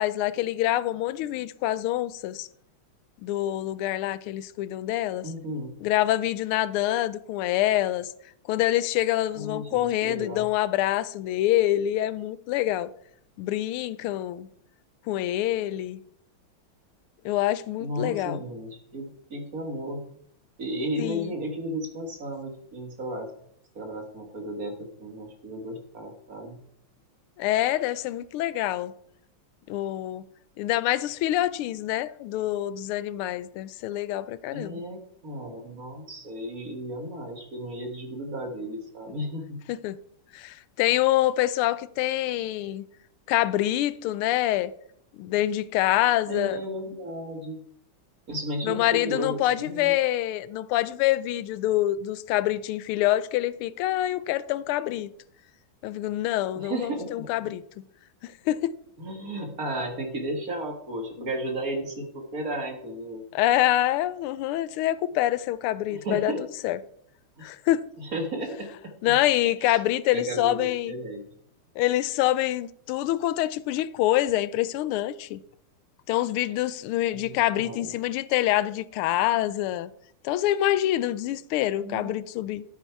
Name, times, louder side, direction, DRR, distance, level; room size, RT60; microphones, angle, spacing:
voice 1, 0.0-2.5 3.2-5.3 5.8-8.1 8.5-12.9 13.4-14.5 15.1-16.0 17.2-18.4 21.0-21.3 27.4-28.9 29.7-30.2 30.6-34.8 39.7-40.0 40.3-42.9 43.3-44.7 45.2-46.6 48.6-55.1 55.8-57.8 58.2-58.7 61.2-61.3 63.3-66.3 66.6-66.8 67.4-67.8 69.0-70.9 71.8-75.4 76.1-79.9 80.2-82.6, left 14 dB, 85° left, 1.5 m, -26 dB
voice 2, 5.2-5.8 9.3-10.5 17.8-20.0 20.6-23.3 23.7-26.6 34.5-39.6 46.3-47.6 48.3-50.0 56.5-57.5 59.0-63.2 65.9-66.4 67.4-67.5 68.0-69.2 69.6-69.8 70.1-71.2 77.1-77.9 81.8-82.2, right 1 dB, 45° right, 1.8 m, -34 dB
12.5 x 8.3 x 4.6 m
omnidirectional pair, 2.3 m